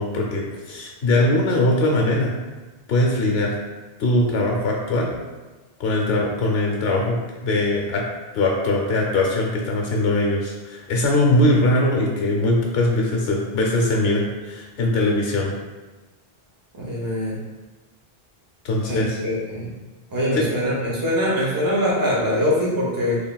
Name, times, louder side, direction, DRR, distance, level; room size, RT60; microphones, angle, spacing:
voice 1, 0.0-2.3 2.9-3.5 4.0-5.1 5.8-7.2 7.4-8.0 8.3-15.5 18.6-19.2 20.3-20.5, left 1 dB, 80° left, -1 dB, 0.9 m, -21 dB
voice 2, 16.8-17.3 18.9-19.7 20.1-23.2, equal, 25° right, -5 dB, 0.6 m, -23 dB
3.4 x 2.5 x 2.2 m, 1.2 s
omnidirectional pair, 1.0 m